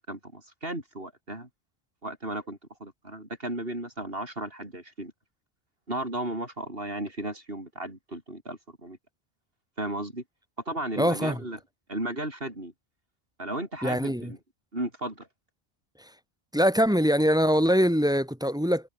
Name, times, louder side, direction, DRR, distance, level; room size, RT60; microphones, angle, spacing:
voice 1, 0.0-1.5 2.0-5.1 5.9-9.0 9.8-10.2 10.7-11.6 11.9-12.7 13.4-14.4 14.7-15.3, right 1 dB, 65° right, 7.6 m, -35 dB
voice 2, 11.0-11.4 13.8-14.3 16.0-16.1 16.5-18.9, equal, 5° right, 7.0 m, -23 dB
omnidirectional pair, 1.1 m